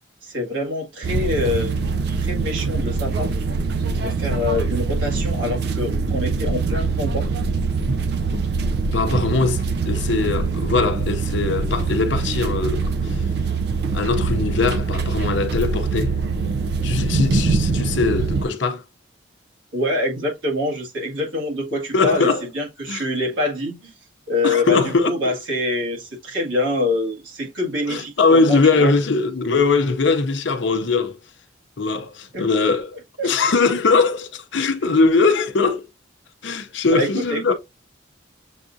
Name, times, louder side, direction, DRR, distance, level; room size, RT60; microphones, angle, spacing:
voice 1, 0.2-1.7 2.2-3.3 4.0-7.3 19.7-23.9 24.3-28.9 32.3-32.5 33.2-33.3 36.9-37.5, left 2 dB, 75° right, 1.8 m, -25 dB
sound 1, 1.0-18.4, right 4 dB, 55° right, 0.4 m, -23 dB
voice 2, 8.9-13.2 13.9-16.1 16.8-18.8 21.9-22.4 22.9-23.0 24.4-25.1 27.9-31.2 31.8-32.9 33.2-35.9 36.4-37.5, left 4 dB, 70° left, 0.6 m, -21 dB
7.1 x 2.5 x 2.6 m
head